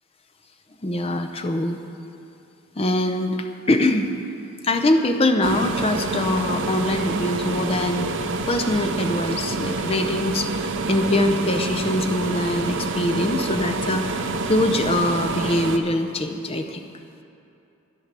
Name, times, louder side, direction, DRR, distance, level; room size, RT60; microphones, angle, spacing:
voice 1, 0.8-1.8 2.8-4.1 4.6-8.1 8.5-16.9, left 1 dB, 25° left, 6 dB, 0.7 m, -23 dB
sound 1, 5.4-15.8, right 3 dB, 55° right, 0.6 m, -27 dB
11.5 x 10.0 x 6.8 m, 2.7 s
head